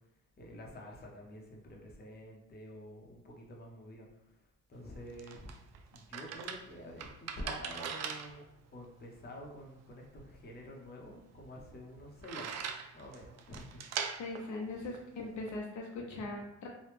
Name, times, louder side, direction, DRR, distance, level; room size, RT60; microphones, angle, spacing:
voice 1, 0.4-5.5 5.9-8.4 8.7-13.8, left 1 dB, 35° left, -1 dB, 0.8 m, -48 dB
sound 1, 4.7-15.6, right 7 dB, 60° right, 0.4 m, -43 dB
voice 2, 14.2-16.7, left 2 dB, 70° left, -1 dB, 0.7 m, -40 dB
3.0 x 2.3 x 3.4 m, 0.87 s
cardioid pair, 90°, 30 cm